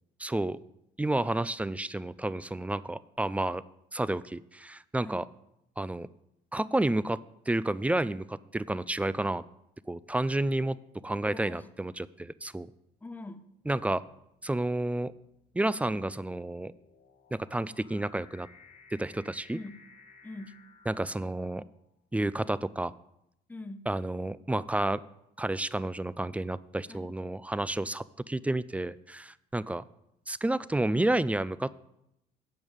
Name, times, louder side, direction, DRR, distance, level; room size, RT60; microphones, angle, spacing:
voice 1, 0.2-0.6 1.0-3.6 3.9-5.3 5.8-6.1 6.5-7.2 7.5-9.4 9.9-10.8 11.0-12.7 13.7-14.0 14.4-15.1 15.5-16.7 17.3-18.5 18.9-19.6 20.9-21.6 22.1-22.9 23.9-25.0 25.4-29.8 30.3-31.8, right 1 dB, 10° right, 18 dB, 0.4 m, -30 dB
voice 2, 11.2-11.7 13.0-13.5 19.5-19.8 20.2-20.6 23.5-23.9 26.9-27.1, left 2 dB, 10° left, 10 dB, 0.9 m, -43 dB
sound 1, 12.4-12.8 13.6-21.8, left 4 dB, 50° left, 2.0 m, -58 dB
14.5 x 5.4 x 9.0 m, 0.80 s
cardioid pair, 110°, 17 cm